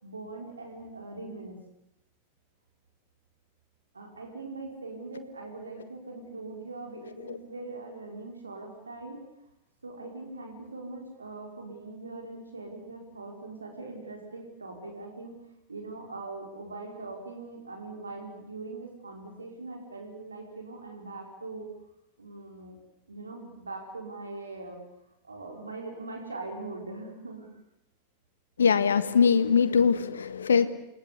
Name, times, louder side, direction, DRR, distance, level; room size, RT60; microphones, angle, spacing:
voice 1, 0.0-1.6 3.9-9.2 9.8-15.3 15.7-21.7 22.2-22.8 23.1-24.8 25.2-27.5, right 3 dB, 75° right, 4.9 m, -41 dB
voice 2, 28.6-30.7, left 6 dB, 70° left, 1.7 m, -22 dB
29.0 x 20.5 x 8.4 m
figure-of-eight pair, 90°, 0 cm